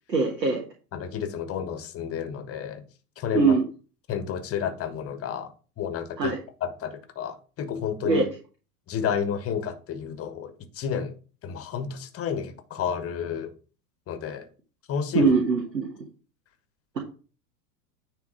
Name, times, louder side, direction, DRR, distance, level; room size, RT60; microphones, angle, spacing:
voice 1, 0.1-0.6 3.3-3.6 6.2-6.4 8.0-8.3 15.1-15.9, right 4 dB, 85° right, 1.4 m, -22 dB
voice 2, 0.9-2.8 3.2-3.6 4.1-5.5 5.8-6.3 6.6-8.2 8.9-11.1 11.4-13.5 14.1-14.5 14.9-15.3, left 7 dB, 30° left, 1.3 m, -30 dB
9.5 x 3.7 x 4.9 m
figure-of-eight pair, 95°, 49 cm